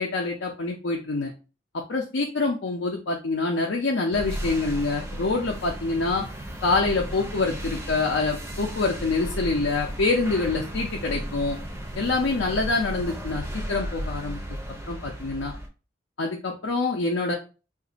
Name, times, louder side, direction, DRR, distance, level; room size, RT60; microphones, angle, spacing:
voice 1, 0.0-1.3 1.9-6.2 6.6-11.6 11.9-14.4 14.9-15.5 16.2-17.3, left 3 dB, 85° left, -1 dB, 0.6 m, -26 dB
sound 1, 4.1-15.7, equal, 15° right, 0.5 m, -35 dB
2.5 x 2.5 x 3.9 m, 0.33 s
head